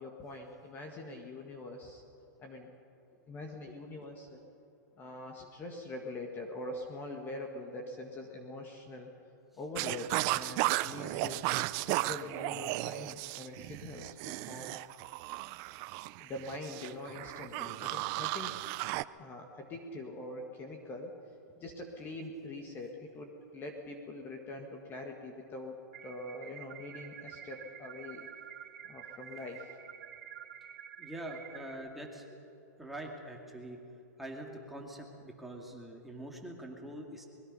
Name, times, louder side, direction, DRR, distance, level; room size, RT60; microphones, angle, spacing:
voice 1, 0.0-2.0 2.4-2.7 3.3-4.5 5.0-9.1 9.6-14.8 16.2-18.5 19.2-21.1 21.6-28.2 28.8-29.8, left 2 dB, 20° left, 2 dB, 1.8 m, -44 dB
sound 1, 9.7-19.0, right 19 dB, 30° right, 0.4 m, -35 dB
sound 2, 25.9-31.7, right 9 dB, 50° right, 2.0 m, -49 dB
voice 2, 31.0-32.4 32.8-33.8 34.2-37.3, right 1 dB, ahead, -1 dB, 2.2 m, -44 dB
25.0 x 21.0 x 5.5 m, 2.8 s
hypercardioid pair, 155°, 10 cm